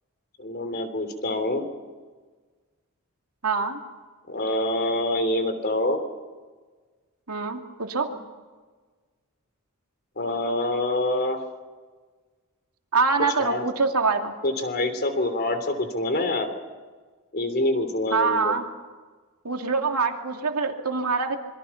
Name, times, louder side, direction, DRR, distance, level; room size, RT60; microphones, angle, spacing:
voice 1, 0.4-1.6 4.3-6.0 10.2-11.4 13.4-13.6 14.4-16.5 17.3-18.6, left 1 dB, 45° left, 8 dB, 3.2 m, -26 dB
voice 2, 3.4-3.8 7.3-8.1 12.9-14.3 18.1-18.6 19.4-21.4, right 4 dB, 80° right, 3 dB, 2.7 m, -24 dB
27.0 x 23.5 x 6.0 m, 1.4 s
head